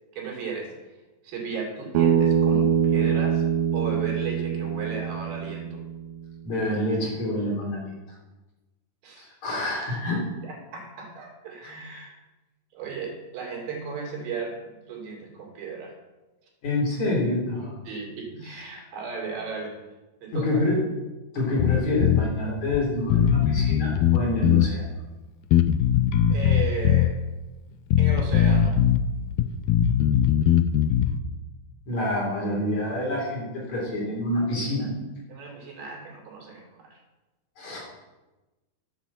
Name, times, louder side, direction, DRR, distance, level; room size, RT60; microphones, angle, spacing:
voice 1, 0.2-0.7 1.2-3.4 3.7-5.8 9.0-9.3 10.4-12.1 12.7-15.9 17.8-19.8 20.2-20.7 26.3-27.2 28.0-28.8 35.3-37.0, right 5 dB, 85° right, -1 dB, 4.4 m, -35 dB
Bass guitar, 1.9-6.2, right 8 dB, 60° right, 2.3 m, -24 dB
voice 2, 6.4-7.9 9.2-10.3 11.6-11.7 16.6-17.8 18.4-18.6 20.3-20.8 21.3-24.8 31.9-34.9 37.6-37.8, left 1 dB, 50° left, -4 dB, 4.3 m, -27 dB
Bass guitar 2, 21.6-22.3 22.7-22.8 23.1-24.7 25.5-27.1 27.9-29.0 29.3-31.2, left 10 dB, 90° left, 2.4 m, -20 dB
10.0 x 7.8 x 7.2 m, 1.1 s
omnidirectional pair, 4.1 m